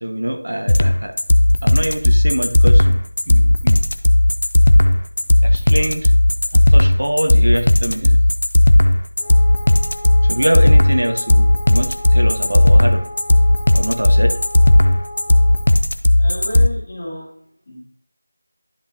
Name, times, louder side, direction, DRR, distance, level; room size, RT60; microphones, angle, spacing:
voice 1, 0.0-1.1 1.6-3.0 3.3-3.8 5.4-6.1 6.5-8.2 10.3-13.0 13.7-14.3, right 1 dB, 85° right, 6 dB, 1.0 m, -23 dB
sound 1, 0.7-16.7, left 1 dB, 45° left, 0.4 m, -13 dB
Wind instrument woodwind instrument, 9.2-15.8, left 1 dB, 5° left, 0.7 m, -35 dB
voice 2, 16.2-17.3 17.7-17.8, left 1 dB, 20° left, -5 dB, 1.8 m, -31 dB
10.0 x 5.4 x 2.8 m, 0.63 s
figure-of-eight pair, 180°, 0 cm